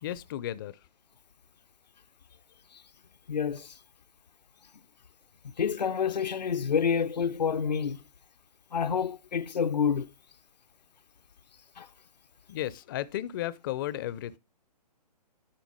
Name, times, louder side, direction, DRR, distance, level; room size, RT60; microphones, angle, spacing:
voice 1, 0.0-0.8 12.5-14.4, left 13 dB, 30° left, 0.4 m, -34 dB
voice 2, 3.3-3.7 5.6-8.0 8.7-10.1 11.8-11.9, left 7 dB, 80° left, 0.5 m, -28 dB
10.5 x 3.8 x 4.7 m
figure-of-eight pair, 130°, 21 cm